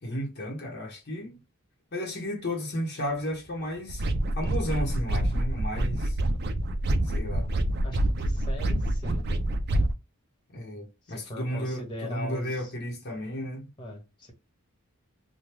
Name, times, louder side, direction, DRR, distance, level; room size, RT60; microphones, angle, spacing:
voice 1, 0.0-1.4 1.9-4.1 4.3-6.2 7.1-7.5 10.5-13.7, equal, 50° left, 0.9 m, -33 dB
sound 1, 3.5-9.2, right 2 dB, 80° left, 1.1 m, -45 dB
sound 2, 3.9-9.9, right 1 dB, 50° right, 0.4 m, -27 dB
voice 2, 7.8-9.2 11.0-12.7 13.8-14.3, left 1 dB, 20° left, 1.2 m, -40 dB
2.9 x 2.2 x 3.2 m
head